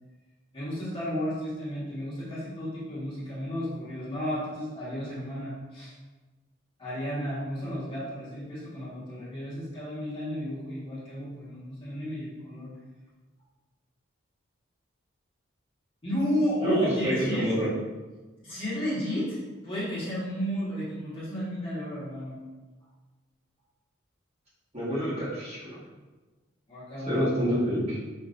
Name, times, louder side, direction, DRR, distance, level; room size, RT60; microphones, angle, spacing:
voice 1, 0.5-5.9 6.8-12.7 16.0-17.5 18.4-22.4 26.7-27.3, equal, 25° left, -10 dB, 1.5 m, -33 dB
voice 2, 16.6-17.7 24.7-25.7 27.1-28.0, equal, 30° right, -9 dB, 1.5 m, -27 dB
5.5 x 2.9 x 2.5 m, 1.2 s
head